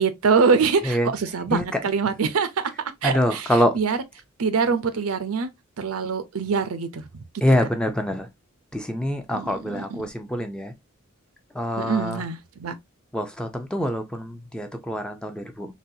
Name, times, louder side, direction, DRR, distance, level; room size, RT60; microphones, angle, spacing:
voice 1, 0.0-2.7 3.0-3.5 3.7-4.0 4.4-5.5 5.8-7.2 9.3-9.9 11.8-12.7, right 5 dB, 85° right, 0.6 m, -24 dB
voice 2, 1.5-1.8 3.0-3.8 7.4-8.3 8.7-10.7 11.5-12.2 13.1-15.7, equal, 5° left, 0.5 m, -25 dB
4.0 x 2.3 x 2.7 m
head